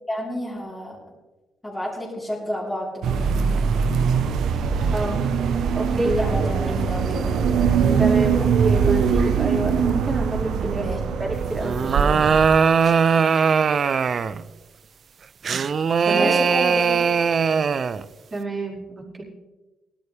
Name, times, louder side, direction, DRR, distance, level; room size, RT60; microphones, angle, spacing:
voice 1, 0.1-1.0 1.6-3.6 5.9-7.3 10.7-11.0 16.1-17.3, left 1 dB, 10° left, -7 dB, 4.0 m, -30 dB
sound 1, 3.0-12.5, right 6 dB, 75° right, 1.0 m, -22 dB
voice 2, 4.9-5.2 5.7-6.3 8.0-10.9 11.2-12.2 16.0-16.3 18.3-19.2, right 2 dB, 30° right, -4 dB, 4.7 m, -28 dB
sound 2, 11.6-14.4 15.4-18.0, right 6 dB, 50° right, 0.5 m, -20 dB
17.5 x 13.0 x 3.4 m, 1.2 s
cardioid pair, 90°, 0 cm